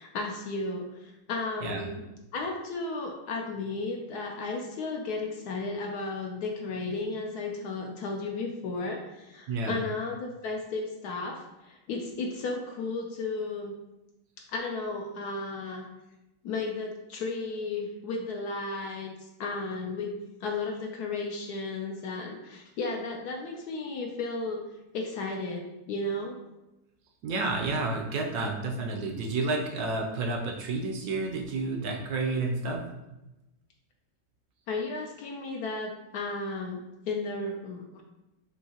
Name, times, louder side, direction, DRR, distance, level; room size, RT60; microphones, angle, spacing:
voice 1, 0.0-2.0 2.3-13.7 14.5-15.8 16.4-20.2 20.4-24.6 24.9-26.4 34.7-38.0, left 3 dB, 70° left, 1 dB, 1.1 m, -34 dB
voice 2, 9.5-9.8 27.2-32.8, right 3 dB, 70° right, 2 dB, 1.0 m, -30 dB
6.3 x 2.8 x 2.8 m, 0.97 s
omnidirectional pair, 1.9 m